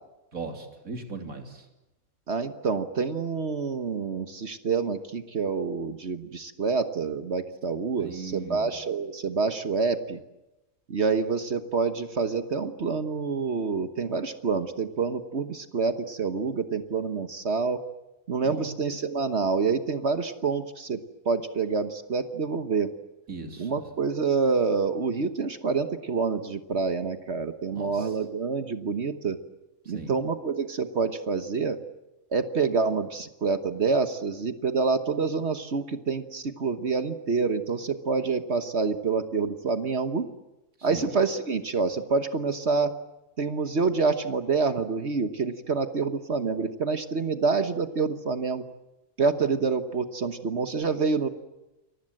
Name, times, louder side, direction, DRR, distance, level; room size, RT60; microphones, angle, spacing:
voice 1, 0.3-1.7 8.0-8.7 18.4-18.7 23.3-23.8 27.7-28.1 29.9-30.2 40.8-41.1, right 4 dB, 80° right, 4 dB, 3.6 m, -38 dB
voice 2, 2.3-10.2 10.9-17.8 18.3-22.9 23.6-29.4 29.9-31.8 32.3-40.3 40.8-42.9 43.4-48.6 49.2-51.3, right 4 dB, 55° right, 9 dB, 1.4 m, -27 dB
29.0 x 23.5 x 7.7 m, 1.0 s
omnidirectional pair, 1.4 m